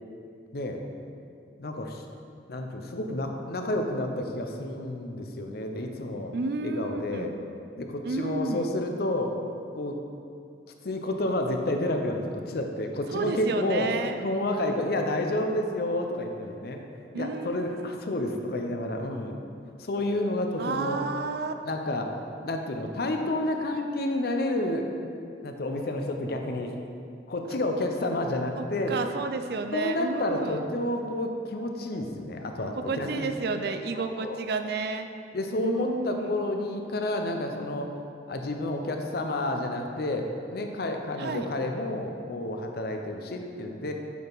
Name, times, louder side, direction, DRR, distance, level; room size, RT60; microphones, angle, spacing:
voice 1, 0.5-0.8 1.6-2.0 2.5-6.3 6.6-7.3 7.8-9.3 9.7-10.0 10.8-13.9 14.2-16.8 17.1-19.4 19.8-21.0 21.6-22.2 22.4-24.9 25.4-26.7 27.3-29.0 29.7-33.4 33.9-34.4 35.3-37.9 38.3-43.9, left 1 dB, 60° left, 4 dB, 0.6 m, -30 dB
voice 2, 6.3-7.3 8.0-8.7 13.1-14.2 17.1-17.9 20.6-21.5 28.6-30.6 32.8-35.1 35.6-36.4 41.2-41.5, right 3 dB, 60° right, 7 dB, 0.4 m, -31 dB
8.2 x 4.5 x 3.9 m, 2.5 s
head